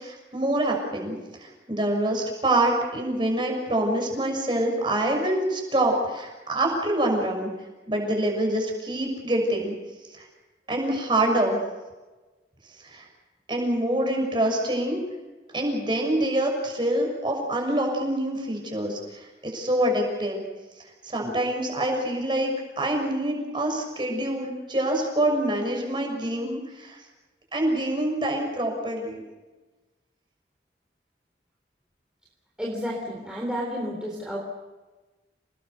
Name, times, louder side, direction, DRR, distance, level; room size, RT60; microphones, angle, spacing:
voice 1, 0.0-7.5 7.9-9.7 10.2-10.3 10.7-11.6 12.8-13.0 13.5-15.0 15.5-20.4 21.0-27.0 27.5-29.2, right 1 dB, 25° right, 2 dB, 6.5 m, -26 dB
voice 2, 32.6-34.4, equal, 5° right, -3 dB, 3.6 m, -31 dB
28.5 x 20.0 x 6.8 m, 1.2 s
head